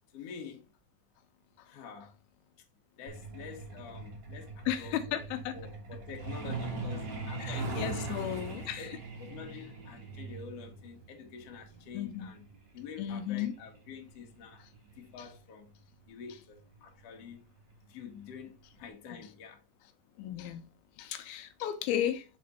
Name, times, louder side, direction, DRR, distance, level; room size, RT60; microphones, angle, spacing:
voice 1, 0.1-0.7 1.6-2.1 3.0-5.3 5.5-8.3 8.7-8.9 9.2-12.5 12.7-14.6 14.9-15.7 16.1-17.4 17.8-19.6, left 6 dB, 55° left, 1.9 m, -47 dB
Truck, 3.1-15.4 16.6-16.8 17.1-17.3 17.7-18.0 18.3-18.4 18.9-19.0, right 3 dB, 70° right, 1.0 m, -41 dB
voice 2, 4.7-5.5 7.4-8.9 11.9-12.3 13.0-13.5 20.2-20.6 21.0-22.3, left 10 dB, 85° left, 2.5 m, -34 dB
6.6 x 4.2 x 3.9 m
omnidirectional pair, 4.4 m